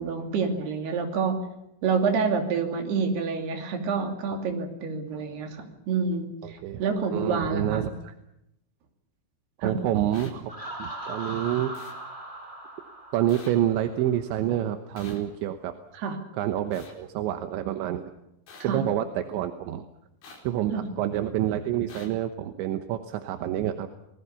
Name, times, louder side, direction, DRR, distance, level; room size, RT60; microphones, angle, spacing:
voice 1, 0.0-1.4 1.8-7.9 9.6-9.7 16.0-16.2 18.7-18.8 20.7-20.8, right 5 dB, 65° right, 4 dB, 4.6 m, -28 dB
voice 2, 6.4-6.8 7.1-8.1 9.6-10.5 10.8-11.8 13.1-15.7 16.3-18.1 18.6-19.8 20.4-23.9, right 11 dB, 80° right, 7 dB, 3.4 m, -28 dB
sound 1, 10.1-10.3 11.8-11.9 13.3-13.5 15.0-15.2 16.7-16.9 18.5-18.6 20.2-20.4 21.9-22.1, left 4 dB, 75° left, 6.8 m, -46 dB
Laughter, 10.5-14.2, right 1 dB, 10° right, 4.6 m, -39 dB
29.5 x 20.5 x 7.0 m, 0.86 s
omnidirectional pair, 5.3 m